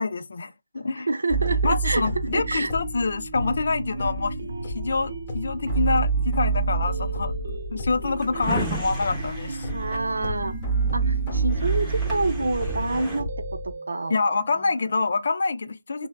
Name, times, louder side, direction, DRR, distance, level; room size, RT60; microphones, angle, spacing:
voice 1, 0.0-1.1 1.6-9.7 14.1-16.1, left 3 dB, 55° left, 0.4 m, -26 dB
voice 2, 1.1-2.7 9.7-10.5 10.9-14.1 16.0-16.1, right 2 dB, 70° right, 0.5 m, -27 dB
sound 1, 1.3-13.7, right 4 dB, 20° left, 0.9 m, -29 dB
sound 2, 1.9-15.0, right 3 dB, 55° right, 0.9 m, -37 dB
Drawer open or close, 8.0-10.7 11.2-11.3 11.5-13.2, right 3 dB, 10° right, 0.7 m, -35 dB
3.1 x 2.0 x 2.3 m
figure-of-eight pair, 155°, 0 cm